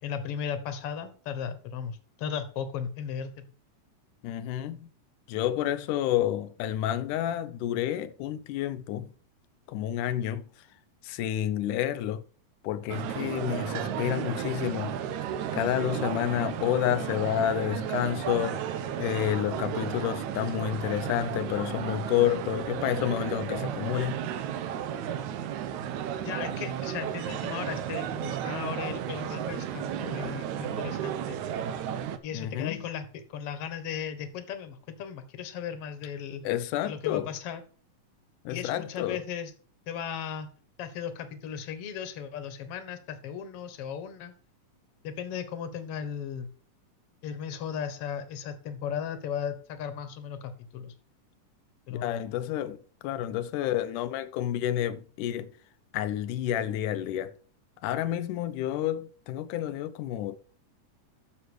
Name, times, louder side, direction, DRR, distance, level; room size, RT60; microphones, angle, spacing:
voice 1, 0.0-3.5 26.2-31.4 32.2-36.4 36.8-37.6 38.5-39.5 39.9-40.5 40.8-44.3 45.0-46.5 47.2-50.9 51.9-52.2, left 8 dB, 55° left, 2.0 m, -36 dB
voice 2, 4.2-4.9 5.3-9.1 9.7-10.7 11.0-12.2 12.6-15.0 15.5-18.7 19.0-24.3 32.3-32.8 36.4-37.3 38.5-39.2 51.9-55.5 55.9-57.4 57.8-60.4, left 11 dB, 80° left, 2.2 m, -29 dB
sound 1, 12.9-32.2, right 9 dB, 70° right, 2.0 m, -33 dB
9.7 x 6.9 x 6.3 m
omnidirectional pair, 3.8 m